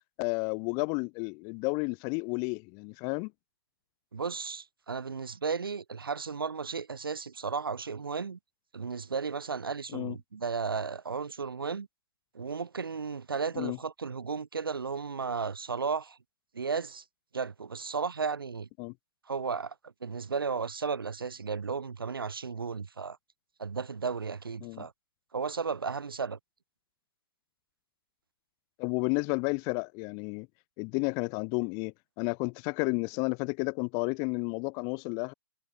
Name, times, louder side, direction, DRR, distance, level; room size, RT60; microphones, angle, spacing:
voice 1, 0.2-3.3 9.9-10.2 13.5-13.8 18.8-18.9 24.6-24.9 28.8-30.5 30.8-35.3, left 36 dB, 30° left, 2.4 m, -32 dB
voice 2, 4.1-8.4 8.7-11.9 12.3-16.2 16.5-17.0 17.3-18.7 19.3-23.2 23.6-24.9 25.3-26.4, right 5 dB, 85° right, 7.5 m, -34 dB
hypercardioid pair, 140°, 12 cm